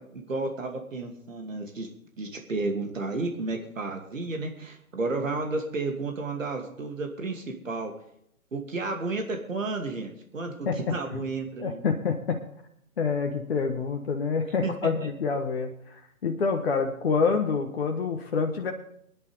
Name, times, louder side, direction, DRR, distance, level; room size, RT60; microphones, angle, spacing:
voice 1, 0.0-1.9 2.2-7.9 8.5-11.8 14.6-15.1, right 3 dB, 65° right, 3 dB, 2.6 m, -32 dB
voice 2, 10.7-11.2 11.6-12.4 13.0-18.7, left 5 dB, 45° left, 3 dB, 1.3 m, -27 dB
24.0 x 10.5 x 3.4 m, 0.72 s
figure-of-eight pair, 135°, 42 cm